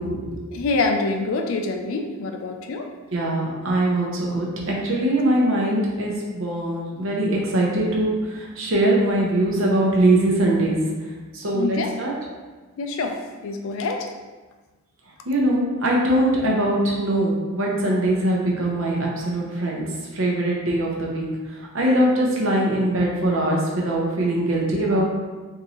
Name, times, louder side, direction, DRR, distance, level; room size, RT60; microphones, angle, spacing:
voice 1, 0.0-0.4 3.1-10.8 11.3-12.1 15.3-19.8 20.1-21.3 21.7-25.0, right 1 dB, 60° right, -2 dB, 0.7 m, -22 dB
voice 2, 0.5-2.9 11.5-11.9 12.8-13.2 13.4-14.1, left 3 dB, 65° left, 4 dB, 0.4 m, -25 dB
3.6 x 2.8 x 2.9 m, 1.3 s
head